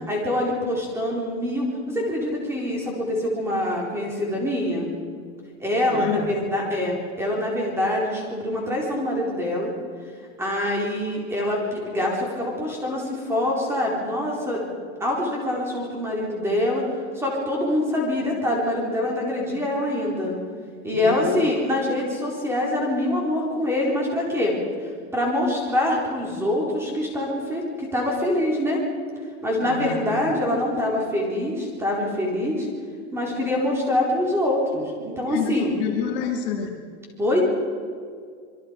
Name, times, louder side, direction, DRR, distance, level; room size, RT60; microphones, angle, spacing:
voice 1, 0.1-4.9 5.6-9.7 10.4-14.6 15.0-16.9 17.2-20.4 20.8-24.6 25.1-28.8 29.4-32.7 33.1-35.7 37.2-37.4, left 1 dB, 5° right, -2 dB, 4.0 m, -25 dB
voice 2, 5.9-6.2 20.9-21.5 29.6-30.2 35.3-36.7, left 8 dB, 45° left, 2 dB, 2.3 m, -28 dB
27.0 x 22.5 x 5.2 m, 2.1 s
supercardioid pair, 170°, 38 cm